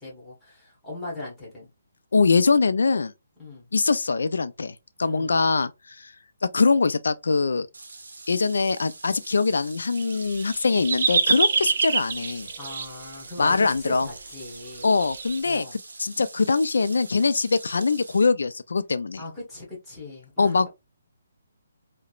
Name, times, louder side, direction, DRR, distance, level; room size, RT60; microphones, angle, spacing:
voice 1, 0.0-1.7 3.4-3.7 5.0-5.4 12.6-14.9 15.4-15.7 19.2-20.7, left 2 dB, 5° left, 0.9 m, -39 dB
voice 2, 2.1-3.1 3.7-4.7 5.0-5.7 6.0-6.1 6.5-7.7 8.3-12.5 13.4-14.1 14.8-19.2 20.4-20.7, left 4 dB, 85° left, 0.3 m, -22 dB
sound 1, 7.7-18.3, right 3 dB, 80° right, 0.7 m, -44 dB
sound 2, 10.0-12.9 14.0-14.1 14.8-15.4, right 5 dB, 45° right, 0.4 m, -25 dB
2.9 x 2.0 x 2.3 m
hypercardioid pair, 175°, 0 cm